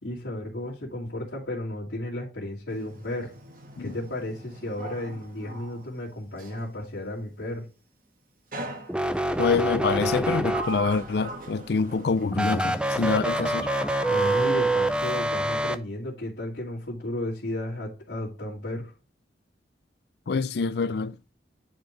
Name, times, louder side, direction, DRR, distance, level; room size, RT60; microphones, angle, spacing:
voice 1, 0.0-3.3 3.8-7.6 14.1-18.9, left 1 dB, 90° left, 2.4 m, -33 dB
Sliding door, 2.7-6.7 8.5-9.4 10.1-12.9 13.2-14.5, right 1 dB, 50° right, 1.5 m, -40 dB
sound 1, 8.9-11.1 12.3-15.8, right 1 dB, 5° right, 0.4 m, -26 dB
voice 2, 9.4-13.7 20.3-21.2, left 4 dB, 65° left, 0.4 m, -26 dB
10.5 x 4.5 x 3.1 m
head